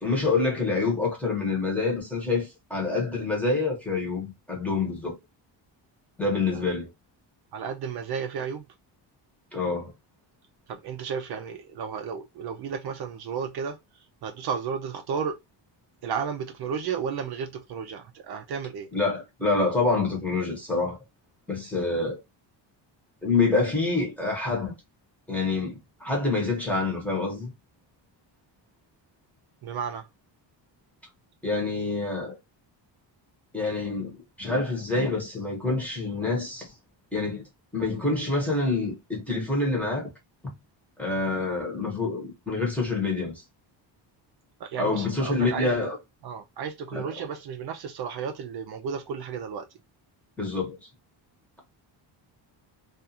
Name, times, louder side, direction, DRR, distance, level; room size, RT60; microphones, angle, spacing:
voice 1, 0.0-5.1 6.2-6.9 9.5-9.9 18.9-21.0 21.5-22.2 23.2-24.7 25.3-27.5 31.4-32.3 33.5-36.7 37.1-37.4 37.7-40.1 40.4-40.5 41.0-43.3 44.8-46.0 46.9-47.3 50.4-50.9, left 3 dB, 5° left, 0.9 m, -27 dB
voice 2, 7.5-8.7 10.7-13.8 14.2-15.4 16.0-18.9 29.6-30.1 44.6-45.9 46.2-49.6, right 6 dB, 60° right, 0.5 m, -33 dB
2.5 x 2.4 x 2.7 m
cardioid pair, 165°, 45 cm